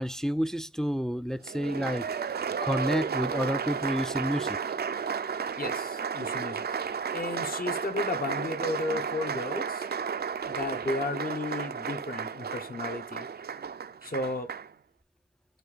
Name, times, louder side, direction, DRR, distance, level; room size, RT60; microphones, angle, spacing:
voice 1, 0.0-2.1 2.6-4.6, equal, 5° left, 0.3 m, -29 dB
Applause, 1.5-14.7, right 6 dB, 65° right, 0.4 m, -33 dB
voice 2, 5.6-9.9 10.4-13.3 14.0-14.5, left 2 dB, 60° left, 1.2 m, -34 dB
7.8 x 2.7 x 5.0 m
wide cardioid pair, 45°, 17 cm